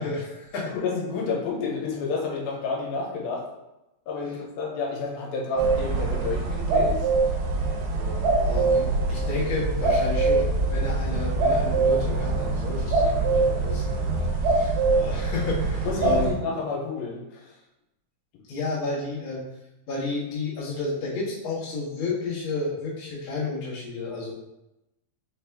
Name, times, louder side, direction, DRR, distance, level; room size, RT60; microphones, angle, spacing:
voice 1, 0.0-0.7 8.0-16.3 18.5-19.5 19.9-24.3, left 3 dB, 55° left, -7 dB, 1.4 m, -32 dB
voice 2, 0.7-3.4 4.1-7.0 15.8-17.4, left 4 dB, 85° left, -2 dB, 2.6 m, -30 dB
sound 1, 5.6-16.3, right 3 dB, 85° right, 2.6 m, -23 dB
5.7 x 2.6 x 3.4 m, 0.94 s
omnidirectional pair, 4.3 m